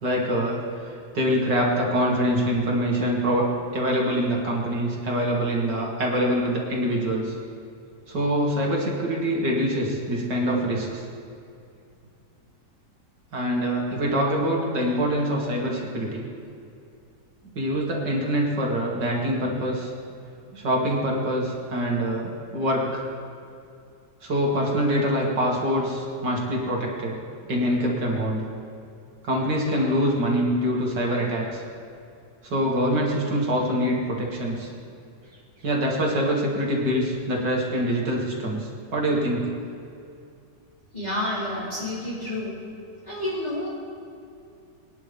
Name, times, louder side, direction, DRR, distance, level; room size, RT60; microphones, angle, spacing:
voice 1, 0.0-3.5 3.7-7.4 8.1-11.0 13.3-16.2 17.6-19.9 20.5-23.0 24.2-27.2 27.5-28.4 29.2-31.6 32.4-34.7 35.6-39.5, equal, 80° right, -2 dB, 2.9 m, -25 dB
voice 2, 40.9-42.5 43.0-43.7, left 1 dB, 25° left, -9 dB, 3.6 m, -29 dB
24.0 x 10.0 x 3.5 m, 2.5 s
omnidirectional pair, 1.8 m